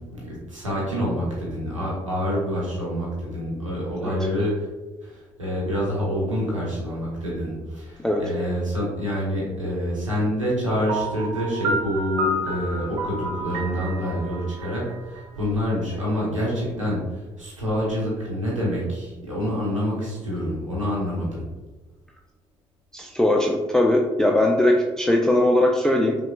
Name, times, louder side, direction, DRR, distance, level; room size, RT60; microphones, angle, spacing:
voice 1, 0.0-4.5 5.0-21.4, equal, 90° right, -6 dB, 0.9 m, -27 dB
Piano, 10.9-15.7, right 1 dB, 75° right, 0.5 m, -30 dB
voice 2, 22.9-26.2, left 1 dB, 5° left, 1 dB, 0.4 m, -20 dB
5.6 x 2.3 x 2.4 m, 1.2 s
figure-of-eight pair, 45°, 16 cm